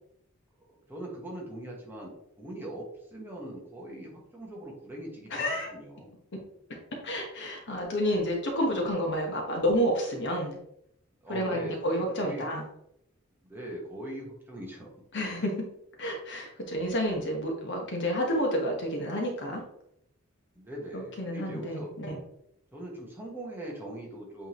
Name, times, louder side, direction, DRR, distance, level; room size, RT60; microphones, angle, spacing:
voice 1, 0.9-6.1 11.2-12.5 13.5-14.9 20.5-21.9 22.7-24.5, right 1 dB, 10° right, -3 dB, 1.5 m, -41 dB
voice 2, 5.3-5.7 7.0-10.6 11.3-12.6 15.1-15.7 16.0-19.6 20.9-22.2, equal, 55° left, 1 dB, 1.3 m, -30 dB
8.2 x 3.7 x 3.1 m, 0.77 s
head